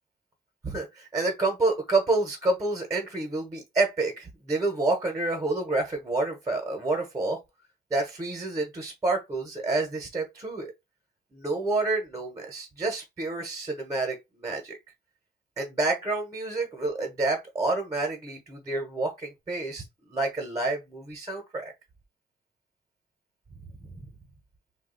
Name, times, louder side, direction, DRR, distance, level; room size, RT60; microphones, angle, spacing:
voice 1, 0.6-7.4 7.9-10.7 11.3-14.8 15.6-21.7 23.9-24.1, right 2 dB, 20° right, 1.0 m, -28 dB
2.7 x 2.3 x 3.9 m
cardioid pair, 110°, 17 cm